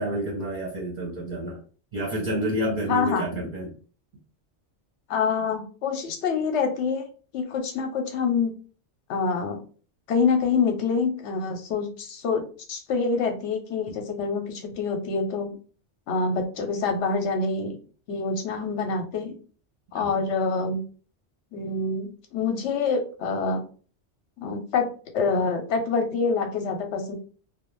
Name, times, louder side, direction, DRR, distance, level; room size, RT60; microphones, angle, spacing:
voice 1, 0.0-1.6 1.9-3.7 20.0-20.1, right 1 dB, 45° right, -3 dB, 0.7 m, -29 dB
voice 2, 2.9-3.2 5.1-7.0 7.3-8.5 9.1-9.6 10.1-12.4 12.7-15.5 16.1-17.7 18.1-19.3 19.9-20.8 21.5-23.6 24.4-24.9 25.1-27.1, left 4 dB, 80° left, 4 dB, 0.9 m, -26 dB
2.4 x 2.1 x 3.0 m, 0.39 s
omnidirectional pair, 1.2 m